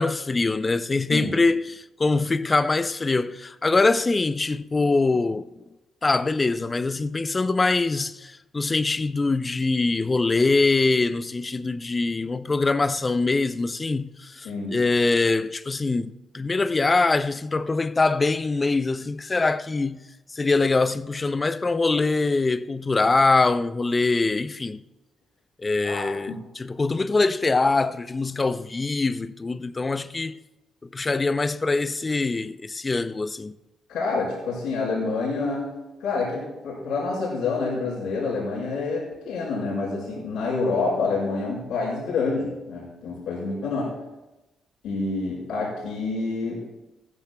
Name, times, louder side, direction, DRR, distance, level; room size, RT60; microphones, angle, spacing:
voice 1, 0.0-5.5 6.0-20.0 20.3-24.8 25.6-30.4 30.8-33.6, left 3 dB, 30° left, 0.5 m, -23 dB
voice 2, 25.8-26.4 33.9-35.7 36.0-43.9 44.8-46.6, left 3 dB, 80° left, 4.6 m, -27 dB
15.0 x 13.5 x 2.2 m
supercardioid pair, 60°, 0 cm